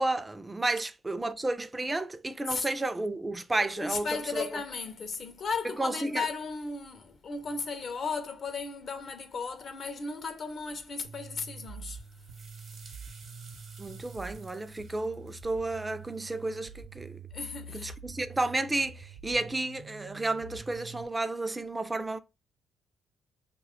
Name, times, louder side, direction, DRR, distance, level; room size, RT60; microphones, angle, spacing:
voice 1, 0.0-4.6 5.6-6.3 13.8-17.2 17.7-22.2, right 2 dB, 20° right, 0.3 m, -32 dB
voice 2, 3.6-12.0 17.3-18.0, left 4 dB, 55° left, 0.4 m, -35 dB
sound 1, 11.0-21.0, right 4 dB, 85° right, 0.6 m, -46 dB
sound 2, 11.7-16.6, right 4 dB, 55° right, 0.8 m, -55 dB
2.8 x 2.2 x 3.5 m
cardioid pair, 90°, 0 cm